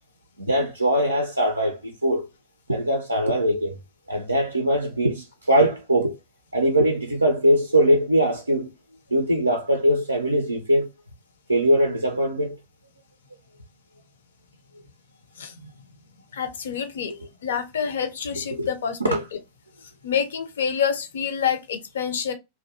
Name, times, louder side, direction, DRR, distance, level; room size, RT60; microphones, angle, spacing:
voice 1, 0.4-2.3 2.7-3.8 4.1-6.2 6.5-8.7 9.1-10.9 11.5-12.6 18.6-18.7 19.0-19.2, right 1 dB, 85° right, 0.4 m, -21 dB
voice 2, 15.4-15.7 16.3-17.1 17.4-19.2 20.0-22.3, left 7 dB, 65° left, 0.5 m, -27 dB
2.5 x 2.0 x 2.7 m
figure-of-eight pair, 90°, 0 cm